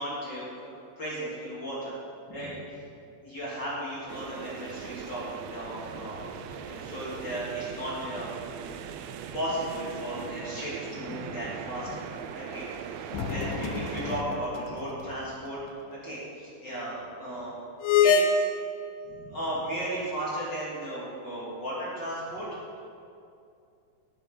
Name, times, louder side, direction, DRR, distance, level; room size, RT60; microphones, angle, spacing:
voice 1, 0.0-2.0 2.3-2.5 3.2-8.3 9.3-12.1 12.3-12.7 13.0-15.6 15.9-17.6 18.0-18.4 19.0-22.5, right 1 dB, 35° left, -8 dB, 2.5 m, -35 dB
sound 1, 4.1-14.2, right 8 dB, 85° right, 1.6 m, -40 dB
sound 2, 13.1-14.8 15.1-15.2 17.8-18.3, left 6 dB, 85° left, 2.2 m, -25 dB
11.5 x 9.7 x 3.8 m, 2.5 s
omnidirectional pair, 3.7 m